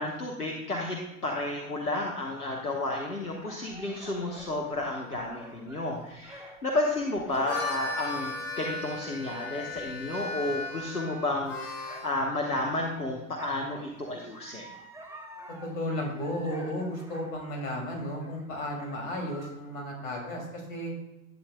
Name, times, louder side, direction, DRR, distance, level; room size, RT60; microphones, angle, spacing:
voice 1, 0.0-14.6, left 2 dB, 90° left, -1 dB, 1.1 m, -32 dB
sound 1, 2.1-13.1 13.4-19.5, right 1 dB, 5° right, 1.3 m, -51 dB
Harmonica, 7.2-12.1, left 2 dB, 35° left, 3.3 m, -36 dB
voice 2, 15.7-20.9, left 1 dB, 60° left, 0 dB, 2.7 m, -34 dB
12.0 x 8.7 x 2.2 m, 0.94 s
figure-of-eight pair, 80°, 45 cm